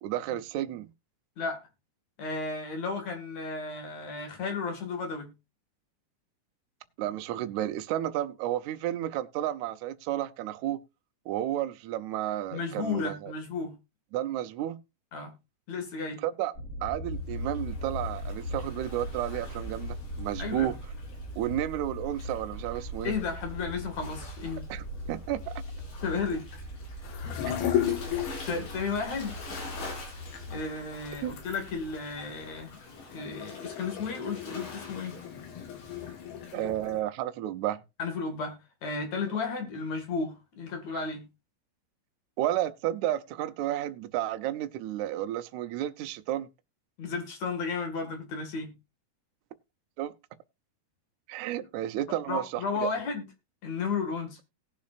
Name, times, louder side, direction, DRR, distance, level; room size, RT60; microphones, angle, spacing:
voice 1, 0.0-0.9 7.0-10.8 11.2-13.3 14.1-14.8 16.2-16.5 16.8-20.8 21.4-23.1 24.7-25.6 27.4-27.5 31.2-31.3 36.5-37.8 42.4-46.5 50.0-50.1 51.3-52.9, right 13 dB, 85° right, 1.6 m, -32 dB
voice 2, 2.2-5.3 12.5-13.8 15.1-15.3 15.7-16.2 20.4-20.7 23.0-24.7 26.0-26.5 27.2-27.4 28.5-29.4 30.5-32.8 33.1-35.1 38.0-41.3 47.0-48.7 51.6-51.7 52.3-53.3 53.6-54.4, left 4 dB, 55° left, 2.9 m, -33 dB
sound 1, 16.5-33.0, equal, 25° left, 2.5 m, -40 dB
Waves surf, 17.2-36.7, left 2 dB, 70° left, 4.8 m, -48 dB
sound 2, 27.0-37.0, left 10 dB, 85° left, 3.5 m, -35 dB
18.5 x 7.3 x 2.5 m
omnidirectional pair, 4.3 m